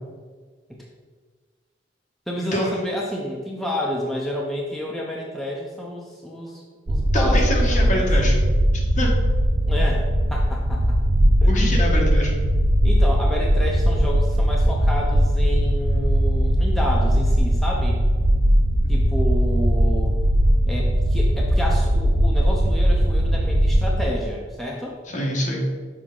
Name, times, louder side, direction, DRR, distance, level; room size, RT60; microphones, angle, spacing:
voice 1, 2.3-8.4 9.6-11.0 11.4-11.6 12.8-18.0 18.9-20.2 20.7-24.9, left 1 dB, ahead, -3 dB, 0.6 m, -30 dB
sound 1, 6.9-24.0, equal, 90° right, 0.6 m, -19 dB
voice 2, 7.1-8.3 9.0-9.1 11.5-12.3 25.1-25.7, left 1 dB, 45° left, -1 dB, 1.3 m, -24 dB
6.3 x 4.7 x 3.8 m, 1.5 s
head